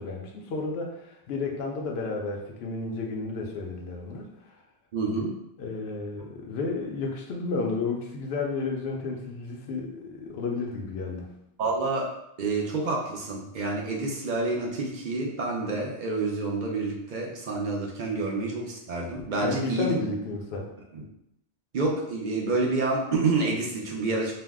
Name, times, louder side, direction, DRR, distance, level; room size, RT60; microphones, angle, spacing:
voice 1, 0.0-4.3 5.6-11.4 19.4-20.7, left 3 dB, 85° left, 0 dB, 0.8 m, -32 dB
voice 2, 4.9-5.4 11.6-12.1 12.4-19.9 20.9-21.0 21.7-24.3, right 3 dB, 60° right, -1 dB, 0.6 m, -28 dB
2.6 x 2.0 x 3.4 m, 0.81 s
omnidirectional pair, 1.0 m